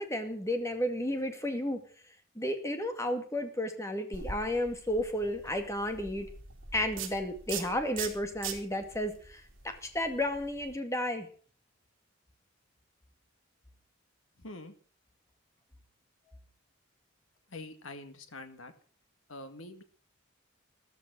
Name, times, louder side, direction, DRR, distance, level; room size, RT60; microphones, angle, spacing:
voice 1, 0.0-1.8 2.4-6.3 6.7-11.3, left 1 dB, 15° left, 6 dB, 2.1 m, -32 dB
sound 1, 4.1-10.7, right 6 dB, 65° right, 3.5 m, -43 dB
voice 2, 14.4-14.7 17.5-18.7 19.3-19.8, left 2 dB, 70° left, 8 dB, 2.1 m, -45 dB
14.0 x 13.0 x 6.2 m, 0.42 s
head